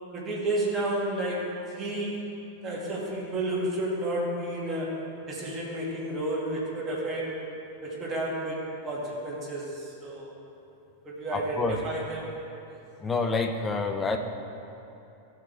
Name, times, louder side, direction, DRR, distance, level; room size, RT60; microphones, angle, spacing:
voice 1, 0.1-2.3 2.6-7.4 7.8-10.3 11.0-12.3 12.7-12.8, right 1 dB, 20° right, -6 dB, 2.3 m, -31 dB
voice 2, 11.3-11.8 13.0-14.2, left 3 dB, 15° left, 5 dB, 0.8 m, -28 dB
15.0 x 6.7 x 3.4 m, 2.8 s
figure-of-eight pair, 90°, 0 cm